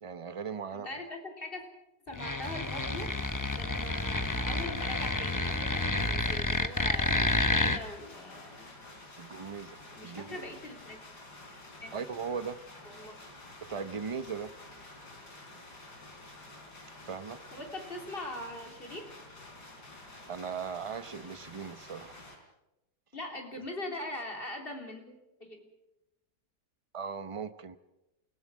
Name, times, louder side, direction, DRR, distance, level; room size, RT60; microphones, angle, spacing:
voice 1, 0.0-0.9 9.2-10.4 11.9-12.6 13.7-14.5 17.1-17.4 20.3-22.2 26.9-27.8, right 6 dB, 45° right, 11 dB, 0.4 m, -38 dB
voice 2, 0.7-1.6 2.1-3.1 3.5-8.7 10.0-11.0 11.8-11.9 12.9-13.2 17.5-19.1 23.1-25.1 25.4-25.6, left 1 dB, 30° left, 2 dB, 3.6 m, -41 dB
sound 1, 2.1-7.8, left 2 dB, 15° left, 0.7 m, -30 dB
sound 2, 2.4-22.4, left 2 dB, 70° left, 4.5 m, -50 dB
28.0 x 17.0 x 6.2 m, 0.94 s
omnidirectional pair, 1.9 m